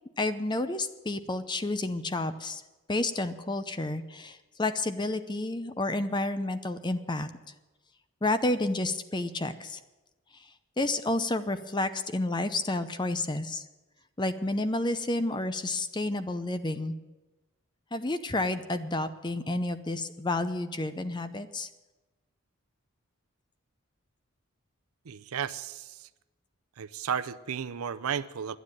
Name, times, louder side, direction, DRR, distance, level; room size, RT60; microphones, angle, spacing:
voice 1, 0.2-2.6 2.9-7.3 8.2-9.8 10.8-13.6 14.2-16.9 17.9-21.7, left 2 dB, 20° left, 11 dB, 0.6 m, -30 dB
voice 2, 25.0-26.1 26.8-28.6, right 7 dB, 90° right, 15 dB, 0.6 m, -34 dB
11.0 x 9.8 x 8.9 m, 1.1 s
head